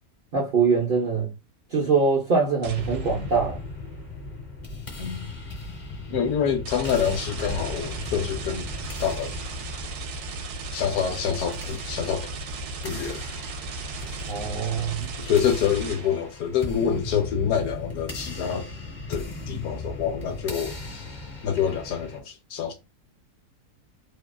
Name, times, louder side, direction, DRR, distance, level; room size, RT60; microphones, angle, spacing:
voice 1, 0.3-1.3 1.7-3.6 6.1-6.2 14.3-15.1, right 5 dB, 55° right, 0.5 m, -23 dB
sound 1, 2.6-3.6 6.7-16.4, right 3 dB, 80° right, 1.1 m, -36 dB
sound 2, 2.7-22.2, left 2 dB, 35° left, 0.9 m, -38 dB
voice 2, 5.0-5.3 6.1-8.7 9.0-9.4 10.7-12.3 12.8-13.2 15.2-18.7 19.1-21.0 21.4-22.7, left 8 dB, 75° left, 1.1 m, -26 dB
2.7 x 2.3 x 2.2 m
omnidirectional pair, 1.7 m